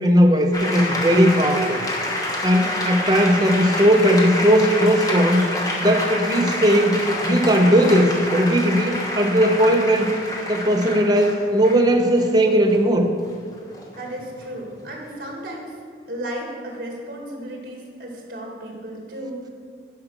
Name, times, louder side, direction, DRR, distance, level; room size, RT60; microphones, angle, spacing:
voice 1, 0.0-1.8 2.4-5.5 5.8-10.1 10.5-13.1, equal, 20° right, 3 dB, 0.7 m, -18 dB
sound 1, 0.5-15.0, left 1 dB, 20° left, 1.1 m, -28 dB
voice 2, 14.0-15.7 16.1-19.4, right 1 dB, 55° right, -1 dB, 2.1 m, -34 dB
11.5 x 4.9 x 6.1 m, 2.1 s
head